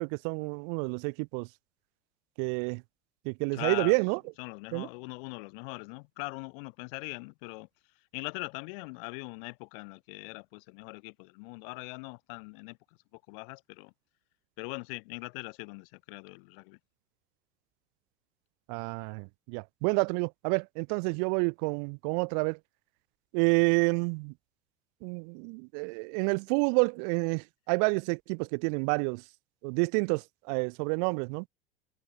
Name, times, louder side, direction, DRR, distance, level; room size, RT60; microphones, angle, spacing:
voice 1, 0.0-1.5 2.4-2.8 3.2-4.2 4.7-4.9 18.7-22.6 23.3-24.3 25.0-29.2 29.6-31.4, right 40 dB or more, 35° right, 0.4 m, -29 dB
voice 2, 3.5-4.0 4.4-7.7 8.1-12.8 13.1-13.9 14.6-16.8, left 30 dB, 50° left, 1.0 m, -41 dB
figure-of-eight pair, 75°, 36 cm